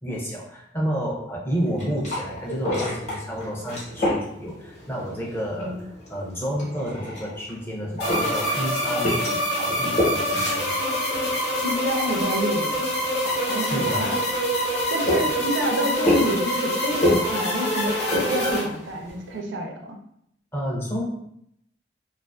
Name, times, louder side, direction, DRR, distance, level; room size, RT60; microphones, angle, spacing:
voice 1, 0.0-5.7 6.1-10.8 13.6-14.1 20.5-21.0, equal, 15° left, -3 dB, 0.4 m, -30 dB
sound 1, 1.6-19.4, left 1 dB, 35° left, 0.9 m, -31 dB
sound 2, 8.0-18.6, equal, 70° left, 0.8 m, -25 dB
voice 2, 11.6-12.8 13.5-14.2 14.6-20.0, right 1 dB, 80° right, 2 dB, 0.5 m, -28 dB
2.4 x 2.4 x 2.3 m, 0.74 s
head